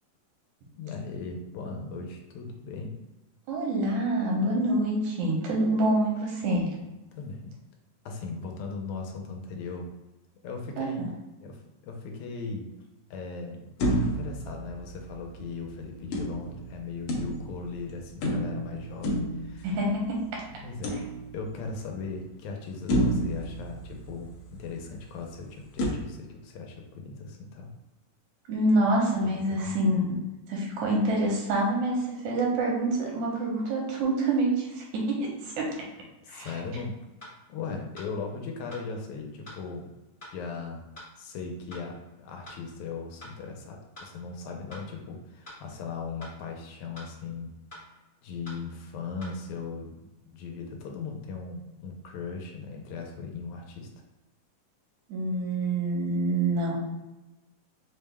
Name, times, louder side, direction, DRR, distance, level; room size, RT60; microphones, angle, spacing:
voice 1, 0.8-3.0 7.2-7.5 8.1-9.9 10.4-11.1 11.4-11.6 11.8-12.7 13.1-13.6 14.0-19.8 20.6-21.0 21.3-27.7 29.2-29.7 36.2-37.0 37.2-39.9 40.3-40.8 41.2-47.5 48.2-53.9, left 4 dB, 90° left, 2 dB, 2.0 m, -38 dB
voice 2, 3.5-6.7 10.8-11.1 19.6-20.4 28.5-30.2 30.5-35.2 35.4-35.7 36.3-36.5 55.1-56.8, right 1 dB, 90° right, -2 dB, 2.4 m, -26 dB
sound 1, 13.8-15.4 16.1-17.7 18.2-20.1 20.8-21.7 22.2-22.3 22.9-24.6 25.8-25.9, equal, 70° left, 1.4 m, -30 dB
sound 2, 36.5-36.6 37.2-37.4 38.0-38.1 38.7-38.9 39.5-39.6 40.2-40.4 41.0-41.1 41.7-41.9 42.5-42.6 43.2-43.4 44.0-44.1 44.7-44.9 45.5-45.6 46.2-46.4 47.0-47.1 47.7-47.9 48.5-48.6 49.2-49.4, left 1 dB, 55° left, 0.5 m, -45 dB
5.2 x 2.2 x 3.3 m, 1.0 s
omnidirectional pair, 3.3 m